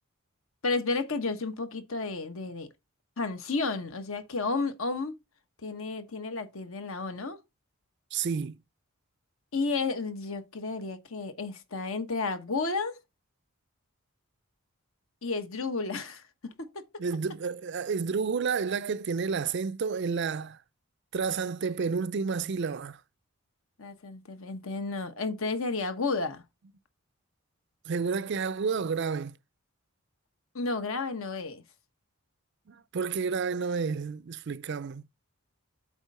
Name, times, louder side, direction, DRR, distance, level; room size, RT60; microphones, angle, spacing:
voice 1, 0.6-2.7 3.2-5.2 5.6-7.4 9.5-13.0 15.2-16.8 23.8-26.4 30.5-31.6, left 3 dB, 65° left, 1.1 m, -32 dB
voice 2, 8.1-8.6 17.0-20.6 21.1-23.0 27.9-29.3 32.7-35.0, right 5 dB, 50° right, 0.4 m, -30 dB
8.2 x 3.6 x 5.4 m
head